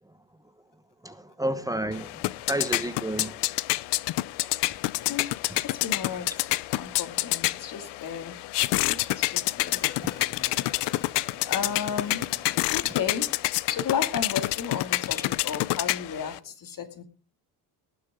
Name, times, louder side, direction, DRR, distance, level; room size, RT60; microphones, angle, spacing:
voice 1, 1.0-2.1 2.5-3.4, right 1 dB, 10° right, 1.1 m, -30 dB
sound 1, 1.9-16.4, left 19 dB, 85° left, 0.7 m, -28 dB
voice 2, 5.0-5.3 5.6-8.4 8.7-13.3 13.7-17.0, left 7 dB, 50° left, 2.5 m, -34 dB
19.0 x 10.5 x 3.7 m
cardioid pair, 110°, 41 cm